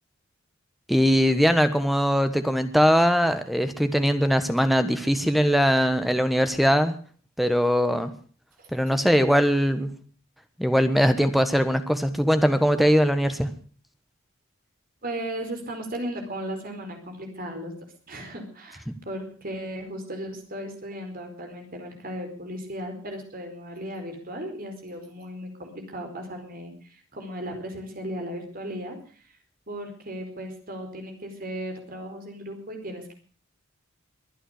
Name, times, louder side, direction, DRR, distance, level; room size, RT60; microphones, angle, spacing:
voice 1, 0.9-6.9 7.4-8.1 8.7-9.9 10.6-13.5 18.9-19.0, equal, ahead, 9 dB, 1.2 m, -21 dB
voice 2, 15.0-17.8 18.1-29.3 29.7-33.1, equal, 45° right, 4 dB, 4.6 m, -36 dB
23.0 x 9.1 x 6.5 m, 0.43 s
head